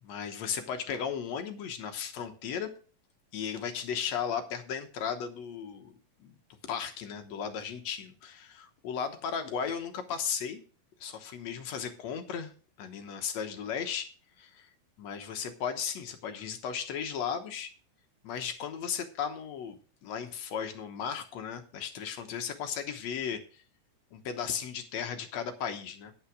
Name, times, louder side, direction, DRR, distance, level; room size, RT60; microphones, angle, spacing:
voice 1, 0.0-2.7 3.3-6.3 6.6-10.6 11.0-12.5 12.8-14.1 14.4-14.7 15.0-17.7 18.2-23.6 24.1-26.1, left 7 dB, 65° left, 7 dB, 2.0 m, -36 dB
8.9 x 8.8 x 4.8 m, 0.39 s
omnidirectional pair, 3.9 m